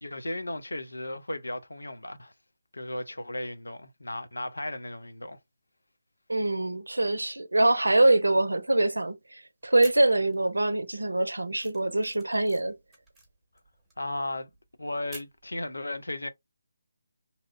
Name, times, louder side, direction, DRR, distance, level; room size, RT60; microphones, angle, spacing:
voice 1, 0.0-2.3 2.7-5.4 14.0-14.5 14.8-16.3, left 1 dB, 80° left, 0.5 m, -35 dB
voice 2, 6.3-12.8, right 2 dB, 80° right, 0.5 m, -24 dB
sound 1, 9.7-10.6 10.9-15.5, right 2 dB, 5° right, 1.0 m, -50 dB
2.8 x 2.1 x 2.5 m
figure-of-eight pair, 150°, 0 cm